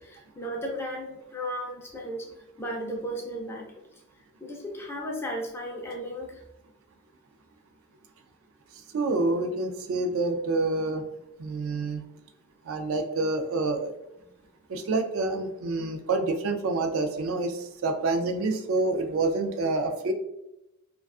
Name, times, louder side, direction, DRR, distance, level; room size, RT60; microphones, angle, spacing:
voice 1, 0.0-2.3 2.6-3.8 4.4-6.4, equal, 10° left, -1 dB, 0.4 m, -35 dB
voice 2, 8.9-11.0 11.4-12.0 12.6-13.9 14.7-20.1, right 3 dB, 75° right, 5 dB, 0.3 m, -27 dB
2.4 x 2.2 x 2.3 m, 0.89 s
head